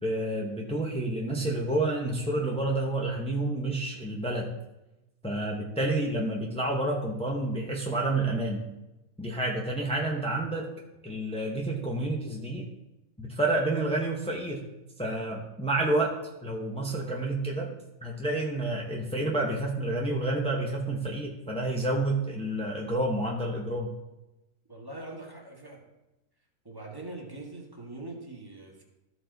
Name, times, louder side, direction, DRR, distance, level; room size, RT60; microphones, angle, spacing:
voice 1, 0.0-4.5 5.2-8.6 9.2-10.7 11.0-12.7 13.2-14.7 15.0-16.1 16.4-17.7 18.0-23.9, right 2 dB, 10° left, -2 dB, 0.4 m, -29 dB
voice 2, 24.7-25.8 26.6-28.8, right 2 dB, 15° right, 0 dB, 1.2 m, -42 dB
13.5 x 4.6 x 3.9 m, 0.98 s
omnidirectional pair, 1.6 m